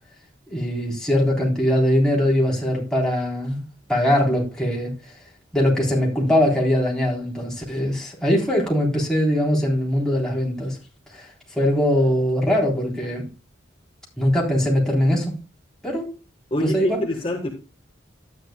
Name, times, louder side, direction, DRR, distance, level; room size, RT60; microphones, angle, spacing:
voice 1, 0.5-3.6 3.9-5.1 5.5-10.8 11.1-13.3 14.2-15.4 15.8-16.1 16.6-17.0, equal, 5° left, 3.6 m, -21 dB
voice 2, 16.5-17.5, left 1 dB, 30° left, 1.4 m, -25 dB
12.5 x 9.6 x 2.2 m
head